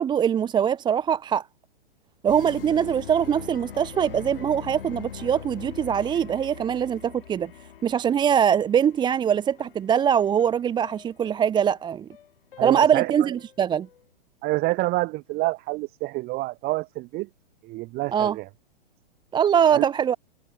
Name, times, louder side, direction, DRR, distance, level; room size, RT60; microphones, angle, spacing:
voice 1, 0.0-1.5 2.2-7.5 7.8-12.1 12.6-13.9 18.1-18.4 19.3-20.1, right 8 dB, 15° right, 1.0 m, -22 dB
sound 1, 2.3-14.0, left 9 dB, 70° left, 5.6 m, -42 dB
voice 2, 12.6-13.3 14.4-17.3 17.6-18.5 19.7-19.8, right 21 dB, 30° right, 2.5 m, -27 dB
hypercardioid pair, 120°, 29 cm